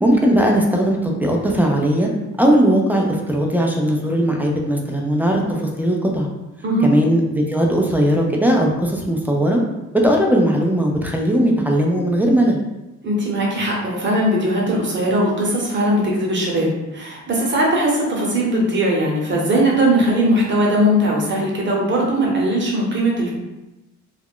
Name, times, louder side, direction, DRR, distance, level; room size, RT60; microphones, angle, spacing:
voice 1, 0.0-2.1 2.4-6.3 6.8-9.6 10.0-12.6, equal, 5° right, 0 dB, 0.4 m, -18 dB
voice 2, 13.0-23.3, right 1 dB, 40° right, -2 dB, 0.9 m, -19 dB
2.4 x 2.1 x 3.5 m, 1.0 s
cardioid pair, 90°, 30 cm